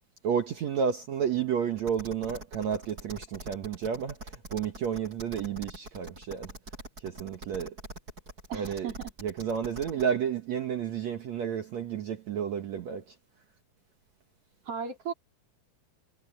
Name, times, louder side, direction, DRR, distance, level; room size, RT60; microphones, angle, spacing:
voice 1, 0.2-6.5 7.0-7.7 8.5-8.9 9.2-13.1, right 7 dB, 75° right, 1.6 m, -31 dB
sound 1, 1.8-10.0, right 2 dB, 20° right, 7.1 m, -44 dB
voice 2, 8.5-9.1 14.7-15.1, right 7 dB, 35° right, 4.2 m, -36 dB
omnidirectional pair, 5.0 m